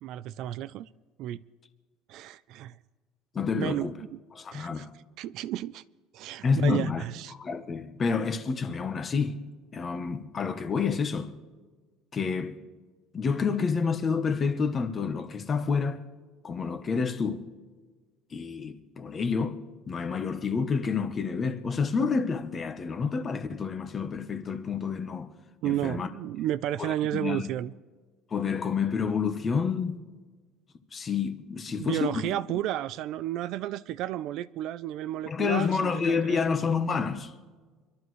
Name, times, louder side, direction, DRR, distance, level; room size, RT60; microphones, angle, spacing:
voice 1, 0.0-0.9 1.2-1.4 2.1-2.8 3.5-4.1 4.5-4.9 5.2-5.8 6.1-7.3 25.6-27.7 31.8-36.5, right 13 dB, 45° right, 0.3 m, -32 dB
voice 2, 3.3-3.9 4.4-4.9 6.4-7.0 7.3-9.4 9.7-11.3 12.1-12.6 13.1-16.0 16.4-17.4 18.3-19.6 19.9-25.3 25.6-26.1 26.8-27.5 28.3-30.0 30.9-32.2 35.3-37.3, left 5 dB, 20° left, 0.9 m, -29 dB
25.5 x 12.5 x 3.1 m
cardioid pair, 175°, 0 cm